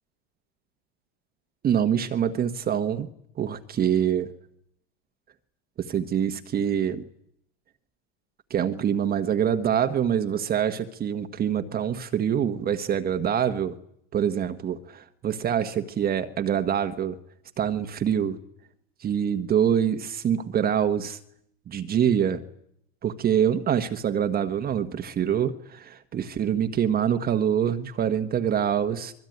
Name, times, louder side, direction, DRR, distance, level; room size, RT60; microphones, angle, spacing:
voice 1, 1.6-3.1 3.4-4.3 5.8-7.1 8.5-13.8 14.1-17.2 17.6-18.4 19.0-21.2 21.7-22.4 23.0-29.1, right 9 dB, 30° right, 8 dB, 1.4 m, -25 dB
24.5 x 22.0 x 9.5 m, 0.73 s
supercardioid pair, 125°, 32 cm